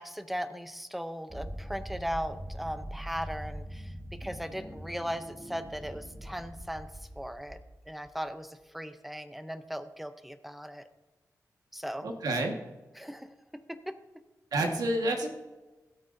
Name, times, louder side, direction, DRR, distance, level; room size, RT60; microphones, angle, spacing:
voice 1, 0.0-6.9 7.2-7.6 7.9-10.8 11.7-12.1 12.9-13.3 13.7-14.0, equal, ahead, 10 dB, 0.6 m, -38 dB
sound 1, 1.3-8.1, equal, 25° right, 1.4 m, -43 dB
voice 2, 12.0-12.5 14.5-15.3, right 1 dB, 90° right, 2 dB, 1.6 m, -28 dB
16.5 x 8.3 x 2.7 m, 1.2 s
wide cardioid pair, 110°, 6 cm